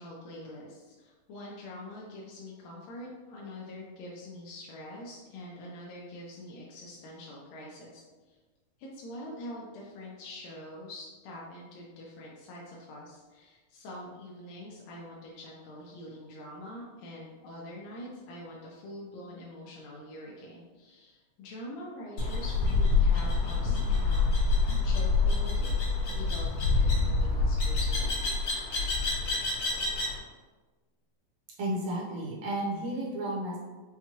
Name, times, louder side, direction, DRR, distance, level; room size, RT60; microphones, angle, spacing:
voice 1, 0.0-8.4 8.8-24.3 24.8-25.7 26.1-28.3, left 1 dB, 75° left, -4 dB, 1.6 m, -44 dB
sound 1, 22.2-30.2, left 3 dB, 55° left, 1.7 m, -26 dB
voice 2, 31.6-33.6, right 1 dB, 65° right, -5 dB, 1.7 m, -32 dB
5.7 x 2.3 x 2.9 m, 1.3 s
omnidirectional pair, 3.5 m